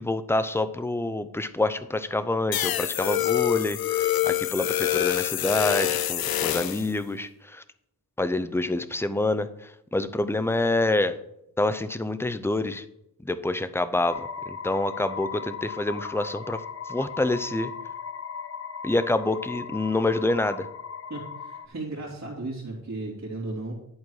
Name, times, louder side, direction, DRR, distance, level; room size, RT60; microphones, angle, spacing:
voice 1, 0.0-7.6 8.2-11.2 11.6-12.8 13.2-16.6 16.9-17.7 18.8-20.7, left 2 dB, 5° left, 12 dB, 0.6 m, -27 dB
sound 1, 2.5-6.9, left 13 dB, 85° left, 0.5 m, -26 dB
sound 2, 14.1-21.7, left 6 dB, 40° left, 0.7 m, -37 dB
voice 2, 21.1-23.7, right 2 dB, 50° right, -3 dB, 2.8 m, -35 dB
11.0 x 4.5 x 6.4 m, 0.79 s
wide cardioid pair, 90°, 35 cm